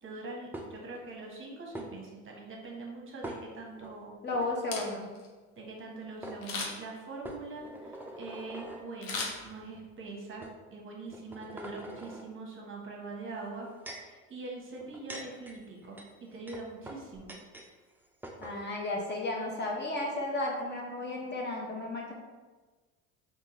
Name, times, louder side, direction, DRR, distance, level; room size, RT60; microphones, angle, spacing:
voice 1, 0.0-4.1 5.6-17.3, right 3 dB, 35° right, -1 dB, 0.9 m, -43 dB
sound 1, 0.5-1.0 1.7-1.9 3.2-3.9 4.3-4.5 5.8-5.9 6.2-6.4 7.2-8.8 9.6-9.8 10.4-10.5 11.1-12.2 13.4-14.1 14.8-17.7 17.9-18.0 18.2-18.6, right 1 dB, 5° right, 0.4 m, -44 dB
voice 2, 4.2-5.1 18.4-22.1, left 2 dB, 30° left, -2 dB, 0.9 m, -33 dB
Camera, 4.5-5.3 6.4-7.0 9.0-10.0 10.4-10.5, left 4 dB, 65° left, 0.9 m, -37 dB
3.6 x 2.6 x 2.9 m, 1.3 s
supercardioid pair, 80°, 36 cm